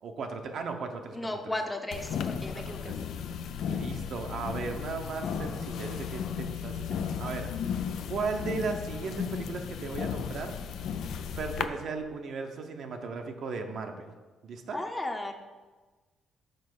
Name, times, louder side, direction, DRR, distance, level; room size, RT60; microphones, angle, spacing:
voice 1, 0.0-1.5 2.5-3.0 3.7-7.8 8.1-10.5 11.4-14.1 14.4-14.8, right 4 dB, 65° right, 5 dB, 0.8 m, -36 dB
voice 2, 1.1-3.0 14.7-15.3, left 1 dB, 10° left, 4 dB, 0.8 m, -35 dB
sound 1, 1.9-11.6, left 7 dB, 75° left, 0.4 m, -35 dB
5.3 x 4.5 x 6.1 m, 1.3 s
cardioid pair, 90°, 0 cm